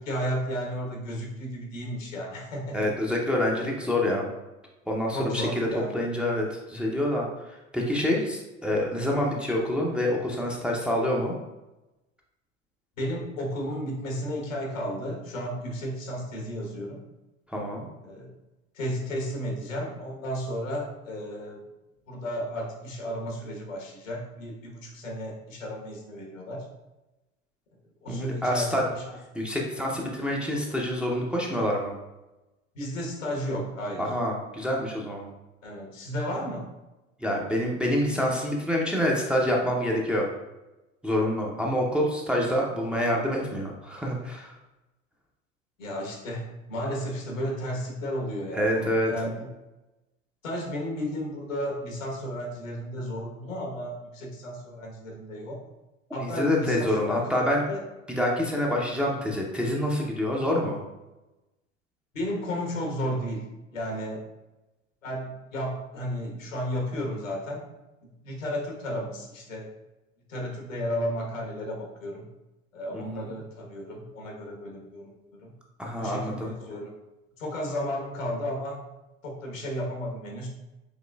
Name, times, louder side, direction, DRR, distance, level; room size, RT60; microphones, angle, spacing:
voice 1, 0.0-2.8 5.1-6.0 13.0-17.0 18.0-18.3 18.7-21.6 22.1-26.7 28.0-29.1 32.7-34.1 35.6-36.7 45.8-49.5 50.4-55.6 56.1-57.2 57.7-57.8 62.1-64.2 65.0-67.6 68.0-69.7 70.3-72.3 72.7-75.5 76.0-76.9 77.4-78.8 79.2-80.5, equal, 80° left, -1 dB, 1.2 m, -33 dB
voice 2, 2.7-4.3 4.9-5.7 5.9-7.3 7.7-11.4 17.5-17.9 28.1-28.8 29.3-31.9 34.0-35.3 37.2-40.3 41.0-44.5 48.5-49.1 56.2-57.7 58.1-60.8 72.9-73.3 75.8-76.5, left 1 dB, 5° right, -2 dB, 0.5 m, -27 dB
5.3 x 3.6 x 2.3 m, 1.0 s
figure-of-eight pair, 80°, 39 cm